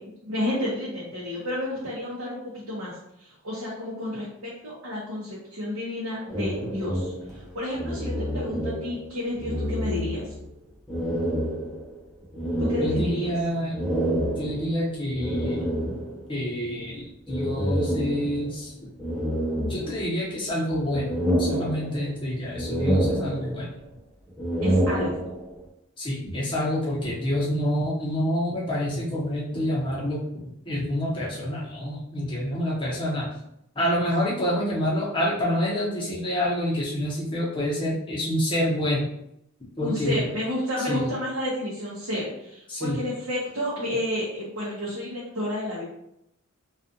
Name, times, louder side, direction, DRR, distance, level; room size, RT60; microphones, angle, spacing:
voice 1, 0.2-10.3 12.6-13.3 24.6-25.3 39.8-45.8, left 1 dB, 75° right, -7 dB, 0.7 m, -31 dB
sound 1, 6.3-9.1 9.4-10.5 10.9-16.3 17.3-18.6 19.0-20.3 20.7-22.2 22.5-23.8 24.3-25.6, equal, ahead, 0.4 m, -28 dB
voice 2, 12.8-13.8 14.4-15.7 16.3-18.7 19.7-21.1 21.4-23.7 26.0-30.2 30.6-33.3 33.8-39.0 39.8-40.2 40.9-41.1 42.7-43.0, equal, 20° left, -6 dB, 0.8 m, -27 dB
2.4 x 2.3 x 2.6 m, 0.77 s
head